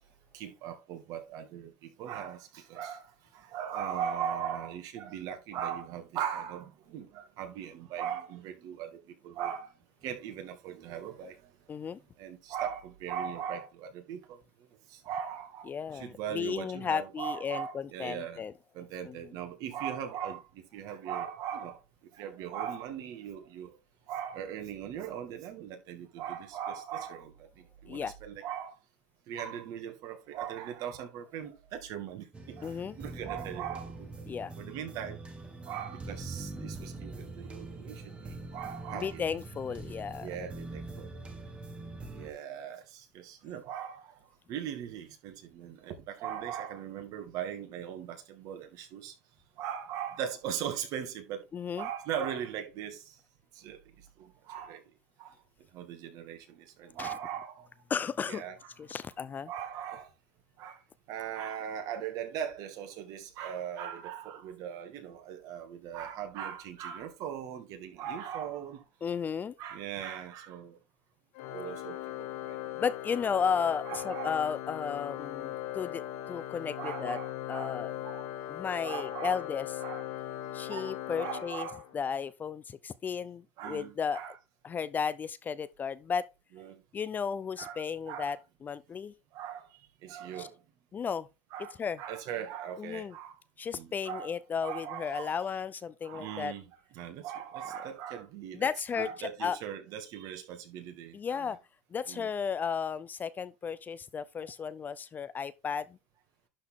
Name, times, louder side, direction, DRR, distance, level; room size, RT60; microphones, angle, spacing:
voice 1, 0.3-9.7 10.0-11.5 12.2-14.4 14.9-18.4 18.7-21.8 22.1-23.8 24.1-28.8 29.3-34.1 34.6-35.2 35.6-39.2 40.2-41.1 42.1-44.2 44.5-49.1 49.6-51.5 51.8-53.1 53.5-53.8 54.2-54.8 55.2-55.3 55.7-57.7 58.3-58.6 59.5-60.1 60.6-60.8 61.1-68.8 69.6-70.8 71.5-72.6 73.8-74.4 76.8-78.3 78.7-79.4 79.8-80.1 80.7-81.8 83.6-84.3 86.6-86.8 87.6-88.3 89.3-90.6 91.5-93.4 93.7-94.3 94.6-95.4 96.0-96.7 96.9-98.7 98.9-101.6 102.1-102.3, right 9 dB, 55° right, 2.3 m, -39 dB
voice 2, 11.7-12.0 15.7-18.5 19.0-19.2 27.9-28.1 32.6-33.0 34.3-34.5 38.9-40.3 51.5-51.9 57.0-57.1 57.9-58.4 58.8-59.5 69.0-69.5 72.8-76.0 76.3-77.2 77.5-77.9 78.5-79.7 80.5-81.7 81.9-84.2 84.6-86.3 86.9-89.1 90.4-90.5 90.9-91.3 91.8-92.0 92.8-93.1 93.6-96.5 98.5-99.6 101.1-101.6 101.9-106.0, left 6 dB, 25° left, 0.5 m, -34 dB
sound 1, 32.3-42.3, right 2 dB, 15° right, 1.6 m, -43 dB
Organ, 71.3-82.2, left 13 dB, 70° left, 1.7 m, -39 dB
11.5 x 4.2 x 3.7 m
supercardioid pair, 125°, 7 cm